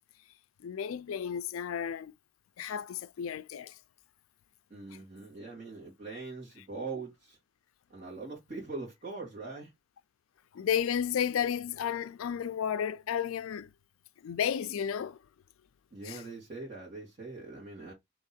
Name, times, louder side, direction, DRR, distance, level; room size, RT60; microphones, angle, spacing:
voice 1, 0.6-2.1 2.6-3.7 10.5-13.7 14.2-15.2 16.1-16.2, left 8 dB, 75° left, 0.4 m, -32 dB
voice 2, 4.7-7.4 7.9-9.7 15.9-17.9, right 3 dB, 40° right, 1.9 m, -42 dB
3.5 x 3.0 x 4.1 m
head